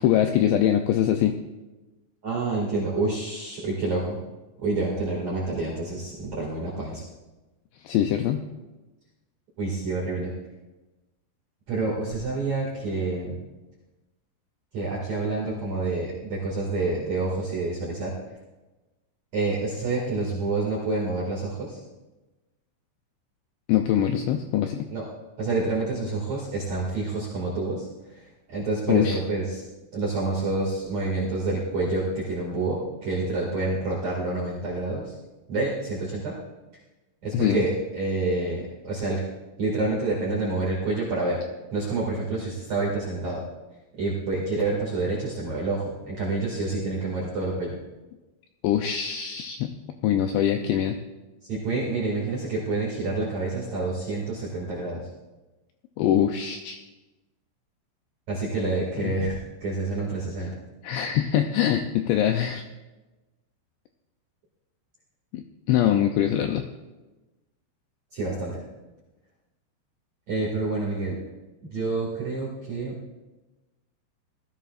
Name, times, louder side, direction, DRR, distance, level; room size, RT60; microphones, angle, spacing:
voice 1, 0.0-1.3 7.8-8.4 23.7-24.9 28.9-29.2 37.3-37.6 48.6-49.7 50.0-51.0 56.0-56.8 60.8-62.6 65.3-66.6, left 10 dB, 80° left, 5 dB, 2.7 m, -23 dB
voice 2, 2.2-4.2 4.6-7.0 9.6-10.3 11.7-13.4 14.7-18.1 19.3-21.8 24.9-25.0 25.4-29.6 29.9-35.1 35.5-36.4 37.2-39.2 39.6-41.4 41.7-43.4 43.9-47.8 51.4-55.0 58.3-60.5 68.1-68.6 70.3-71.2 71.7-72.9, right 3 dB, 45° right, -6 dB, 2.9 m, -28 dB
19.5 x 15.0 x 2.5 m, 1.1 s
omnidirectional pair, 5.4 m